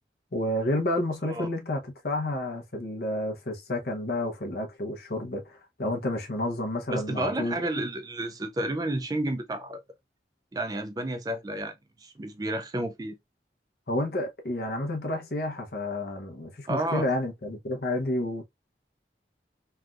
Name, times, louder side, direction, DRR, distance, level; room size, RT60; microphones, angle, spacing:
voice 1, 0.3-7.6 13.9-18.4, left 1 dB, 60° left, 0.8 m, -30 dB
voice 2, 6.9-9.8 10.5-13.2 16.7-17.0, right 1 dB, 20° right, 0.4 m, -31 dB
3.3 x 2.3 x 2.4 m
head